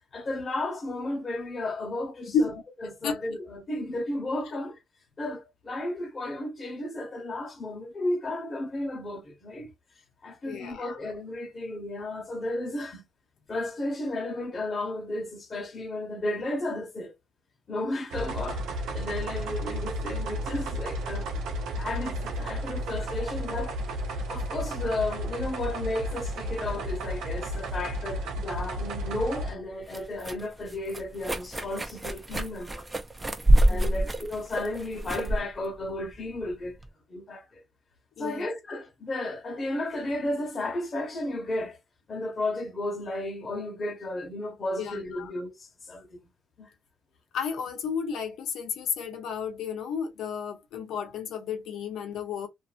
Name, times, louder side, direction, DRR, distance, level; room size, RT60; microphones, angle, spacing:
voice 1, 0.1-2.5 2.8-4.8 5.2-9.7 10.2-13.1 13.5-17.1 17.7-21.3 21.8-23.8 24.3-32.9 33.6-36.8 37.1-37.6 38.2-41.8 42.1-46.2 46.6-46.7, left 1 dB, 40° left, 1.1 m, -33 dB
voice 2, 2.8-3.2 10.4-10.9 33.7-34.1 38.2-38.5 44.8-45.3 47.3-52.5, left 6 dB, 80° left, 0.8 m, -32 dB
sound 1, 18.1-29.5, equal, 85° right, 0.6 m, -33 dB
sound 2, 29.1-36.9, right 1 dB, 20° right, 0.6 m, -27 dB
2.6 x 2.6 x 2.4 m
cardioid pair, 90°, 0 cm